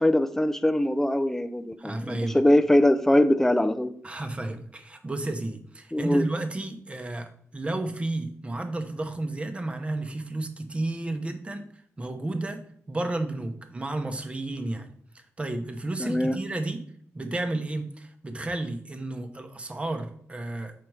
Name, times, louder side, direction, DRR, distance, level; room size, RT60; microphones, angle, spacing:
voice 1, 0.0-3.9 5.9-6.3 16.0-16.4, left 1 dB, 5° left, 12 dB, 0.4 m, -22 dB
voice 2, 1.8-2.4 4.0-11.7 12.0-12.6 12.9-14.9 15.1-16.8 17.1-20.7, right 2 dB, 20° right, 6 dB, 0.8 m, -32 dB
6.4 x 4.2 x 4.7 m, 0.65 s
wide cardioid pair, 120°, 6 cm